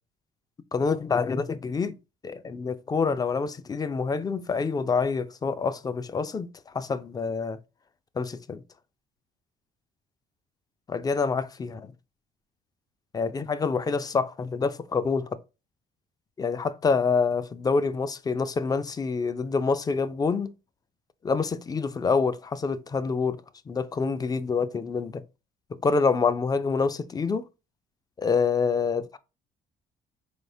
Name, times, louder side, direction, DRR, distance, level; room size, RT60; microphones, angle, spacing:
voice 1, 0.7-2.0 2.2-7.6 8.2-8.6 10.9-11.9 13.1-15.3 16.4-20.5 21.2-23.4 23.7-25.2 25.8-27.5 28.2-29.2, left 5 dB, 25° left, 0.3 m, -26 dB
4.0 x 3.4 x 2.6 m
cardioid pair, 110°, 17 cm